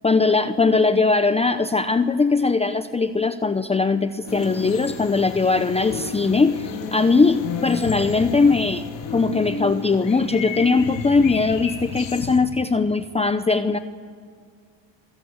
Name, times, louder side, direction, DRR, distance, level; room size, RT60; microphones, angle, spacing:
voice 1, 0.0-13.8, left 4 dB, 15° left, 10 dB, 0.8 m, -20 dB
sound 1, 4.2-5.6 5.8-11.1, left 4 dB, 40° left, 5.5 m, -35 dB
sound 2, 4.3-12.4, left 6 dB, 60° left, 3.8 m, -35 dB
27.5 x 23.0 x 8.1 m, 2.1 s
cardioid pair, 110°, 49 cm